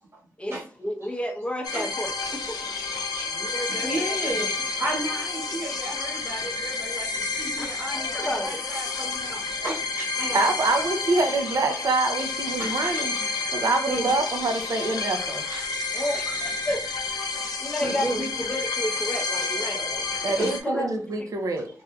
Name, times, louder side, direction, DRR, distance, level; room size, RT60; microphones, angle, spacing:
voice 1, 0.4-2.6 3.3-4.5 7.6-8.6 15.9-16.8 17.6-19.9 20.6-20.9 21.2-21.3, left 1 dB, 15° left, 2 dB, 0.7 m, -32 dB
sound 1, 1.6-20.6, left 4 dB, 85° left, 0.5 m, -30 dB
voice 2, 3.7-4.5 4.8-10.4 12.6-13.0 13.9-14.1 15.2-15.7 17.8-18.2 19.5-20.1 20.4-20.8, right 1 dB, 50° right, -6 dB, 1.3 m, -34 dB
voice 3, 10.3-15.4 20.2-21.7, right 3 dB, 65° right, 6 dB, 0.6 m, -25 dB
3.5 x 2.5 x 2.2 m, 0.41 s
cardioid pair, 60°, 6 cm